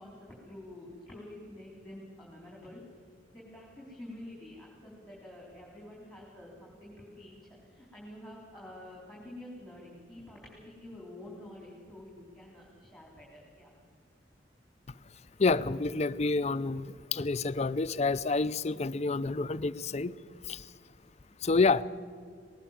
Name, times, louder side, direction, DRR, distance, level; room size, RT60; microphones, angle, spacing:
voice 1, 0.0-2.8 3.3-13.7, left 1 dB, ahead, -3 dB, 4.2 m, -48 dB
voice 2, 15.4-20.2 20.5-20.7 21.4-21.8, left 3 dB, 40° left, 15 dB, 0.5 m, -28 dB
19.5 x 19.0 x 7.6 m, 2.1 s
head